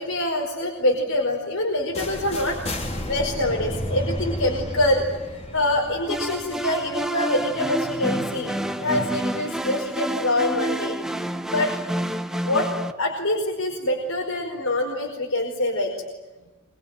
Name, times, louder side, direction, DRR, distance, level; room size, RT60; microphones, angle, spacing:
voice 1, 0.0-2.6 2.8-11.0 11.5-11.7 12.4-12.7 13.0-15.9, left 1 dB, 70° left, 0 dB, 4.9 m, -25 dB
sound 1, 1.9-7.8, left 1 dB, 30° left, 3.6 m, -32 dB
sound 2, 6.1-12.9, right 1 dB, ahead, 1.2 m, -28 dB
26.0 x 23.5 x 9.1 m, 1.1 s
head